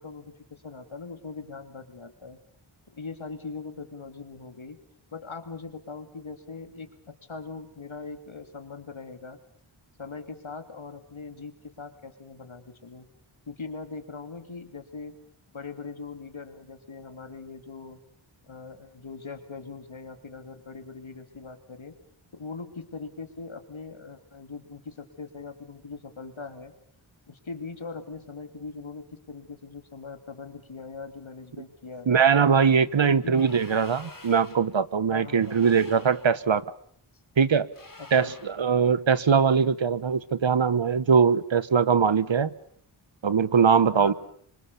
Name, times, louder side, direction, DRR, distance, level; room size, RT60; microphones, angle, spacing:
voice 1, 0.0-2.4 2.9-4.8 5.1-9.4 10.0-13.1 13.5-15.1 15.5-18.0 18.4-22.0 22.3-26.7 27.3-32.2 32.9-33.4 35.1-35.8 38.0-38.4 43.9-44.1, left 4 dB, 70° left, 8 dB, 3.1 m, -41 dB
voice 2, 32.1-36.6 37.4-37.7 38.1-42.5 43.2-44.1, right 6 dB, 65° right, 16 dB, 1.2 m, -21 dB
sound 1, 33.3-34.7 35.3-36.4 37.7-38.6, left 2 dB, 40° left, 4.4 m, -48 dB
26.0 x 25.0 x 7.0 m, 0.62 s
cardioid pair, 45°, 49 cm